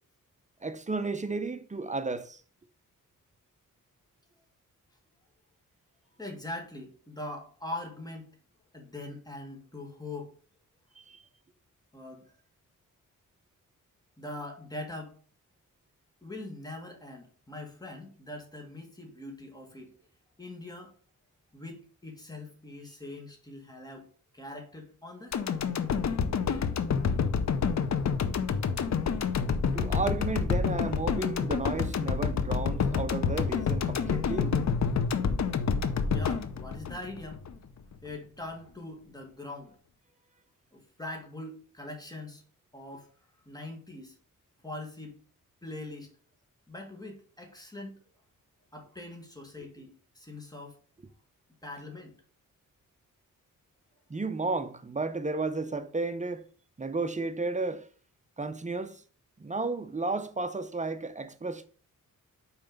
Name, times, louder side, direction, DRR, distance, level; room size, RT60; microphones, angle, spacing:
voice 1, 0.6-2.4 11.0-11.2 29.7-34.5 54.1-56.5 56.8-57.9 58.4-59.0 59.4-61.7, right 3 dB, 20° right, 0.6 m, -33 dB
voice 2, 6.2-8.4 8.7-10.3 11.9-12.4 14.2-15.2 16.2-19.9 20.4-20.9 21.5-24.1 24.3-25.4 36.1-37.5 38.0-39.8 40.7-42.4 42.7-43.1 43.5-44.2 44.6-45.2 45.6-46.1 46.7-48.0 48.7-50.8 51.6-52.1, left 2 dB, 10° left, 1.9 m, -42 dB
sound 1, 25.3-37.5 37.9-38.0, left 6 dB, 55° left, 0.7 m, -28 dB
5.7 x 4.4 x 5.2 m
wide cardioid pair, 110°, 33 cm